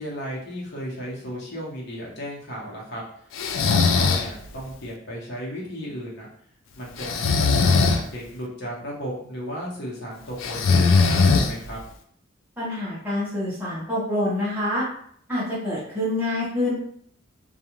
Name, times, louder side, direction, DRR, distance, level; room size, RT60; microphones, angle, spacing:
voice 1, 0.0-3.0 3.6-6.3 6.8-11.8, equal, 60° left, -4 dB, 1.0 m, -35 dB
Breathing, 3.4-4.3 7.0-8.0 10.4-11.8, left 4 dB, 80° left, 0.4 m, -19 dB
voice 2, 12.6-14.8 15.3-16.7, left 1 dB, 10° right, -9 dB, 0.8 m, -26 dB
2.4 x 2.3 x 3.0 m, 0.63 s
head